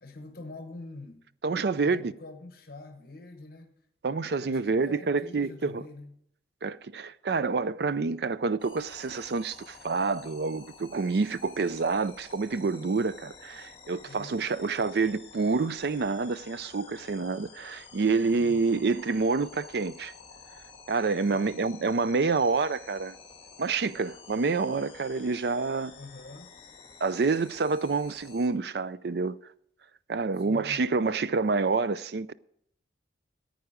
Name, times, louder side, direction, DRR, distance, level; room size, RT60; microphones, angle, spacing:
voice 1, 0.0-1.2 1.8-3.7 4.5-6.1 14.0-14.5 18.4-18.6 21.3-21.6 26.0-26.5 30.4-30.9, left 2 dB, 55° left, 1.1 m, -45 dB
voice 2, 1.4-2.1 4.0-5.8 6.6-20.1 20.9-23.2 23.6-25.9 27.0-29.4 30.1-32.3, right 4 dB, 60° right, 0.4 m, -28 dB
sound 1, 8.6-28.5, left 5 dB, 30° left, 1.8 m, -51 dB
14.5 x 9.2 x 5.0 m
head